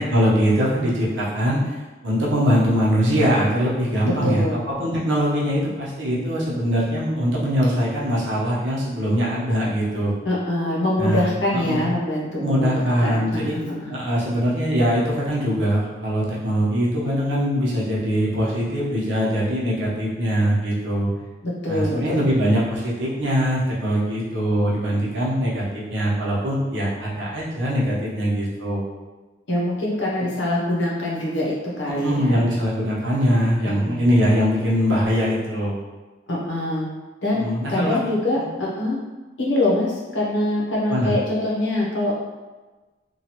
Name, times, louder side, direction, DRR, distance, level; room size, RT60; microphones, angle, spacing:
voice 1, 0.0-1.7 2.0-10.1 11.0-11.2 11.5-11.8 12.4-13.6 13.9-21.1 21.7-28.8 31.9-35.8 37.3-38.0 38.4-38.5 40.9-41.1, equal, 85° right, -6 dB, 0.9 m, -22 dB
voice 2, 4.2-4.6 10.2-13.9 21.4-22.2 29.5-32.5 33.8-34.1 36.3-36.9 37.2-37.4 37.7-39.0 39.4-42.2, left 1 dB, 80° left, -4 dB, 0.8 m, -24 dB
3.0 x 2.3 x 2.9 m, 1.2 s
head